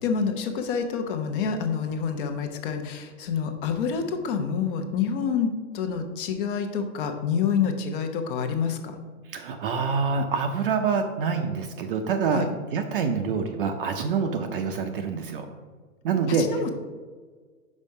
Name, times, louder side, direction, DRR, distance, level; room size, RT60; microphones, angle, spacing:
voice 1, 0.0-9.0 12.3-12.5 16.3-16.7, left 6 dB, 40° left, 6 dB, 0.8 m, -27 dB
voice 2, 9.3-12.4 12.7-15.5 16.0-16.5, right 5 dB, 40° right, 5 dB, 0.5 m, -26 dB
5.4 x 4.8 x 5.3 m, 1.5 s
hypercardioid pair, 140°, 43 cm